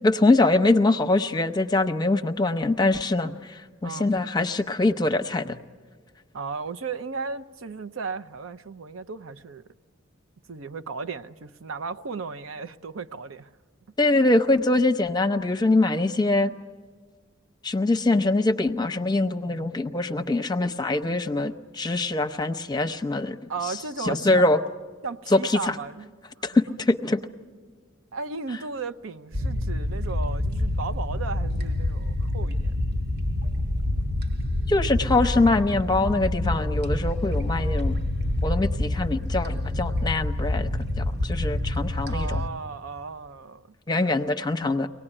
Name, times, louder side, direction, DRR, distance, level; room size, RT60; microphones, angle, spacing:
voice 1, 0.0-5.6 14.0-16.5 17.6-23.4 24.0-24.6 25.3-25.7 26.4-27.2 34.7-38.0 38.4-40.7 41.0-42.4 43.9-44.9, left 2 dB, 20° left, 0.7 m, -23 dB
voice 2, 3.8-4.1 6.3-9.6 10.5-13.5 23.5-24.5 25.0-26.1 28.1-32.8 42.1-43.7 43.9-44.3, right 4 dB, 80° right, 0.6 m, -35 dB
sound 1, 29.3-42.5, left 1 dB, 55° right, 1.1 m, -27 dB
24.0 x 18.5 x 9.9 m
head